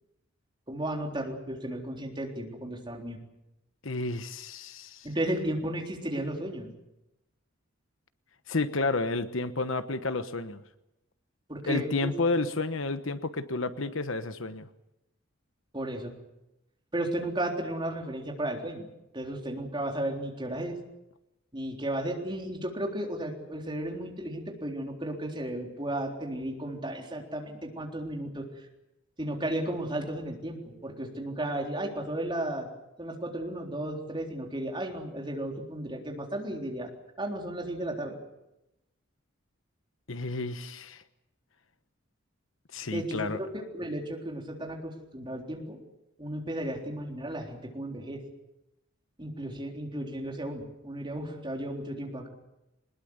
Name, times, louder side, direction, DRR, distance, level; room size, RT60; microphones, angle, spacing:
voice 1, 0.7-3.2 5.0-6.7 11.5-12.1 15.7-16.1 16.9-18.9 19.1-20.8 21.5-28.4 29.2-32.7 33.0-36.9 37.2-38.2 42.9-43.3 43.7-45.8 46.2-48.2 49.2-52.3, right 1 dB, 25° right, 1 dB, 3.8 m, -34 dB
voice 2, 3.8-5.1 8.5-10.6 11.7-14.7 40.1-41.0 42.7-43.4, left 3 dB, 70° left, 11 dB, 1.2 m, -31 dB
22.0 x 20.5 x 8.1 m, 0.90 s
head